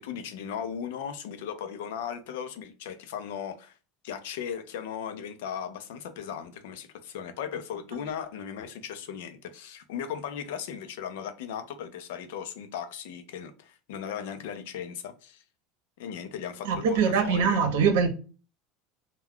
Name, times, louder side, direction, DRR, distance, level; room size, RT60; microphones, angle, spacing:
voice 1, 0.0-3.7 4.0-15.4 16.0-17.6, left 8 dB, 85° left, 0.5 m, -37 dB
voice 2, 16.6-18.1, right 6 dB, 75° right, 0.7 m, -23 dB
2.2 x 2.2 x 3.5 m
cardioid pair, 175°, 0 cm